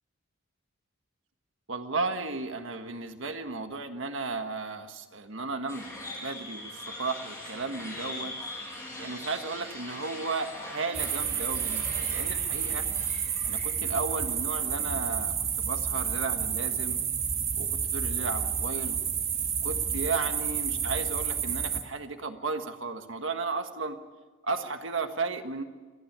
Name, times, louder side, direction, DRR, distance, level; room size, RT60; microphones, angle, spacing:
voice 1, 1.7-5.9 6.2-8.3 9.0-12.9 13.4-17.0 17.6-19.0 19.6-24.0 24.4-25.6, right 3 dB, 65° right, 7 dB, 1.5 m, -34 dB
sound 1, 5.7-14.3, left 2 dB, 15° left, 7.2 m, -42 dB
sound 2, 10.9-21.8, right 7 dB, 30° right, 1.6 m, -30 dB
27.5 x 10.5 x 9.4 m, 1.3 s
head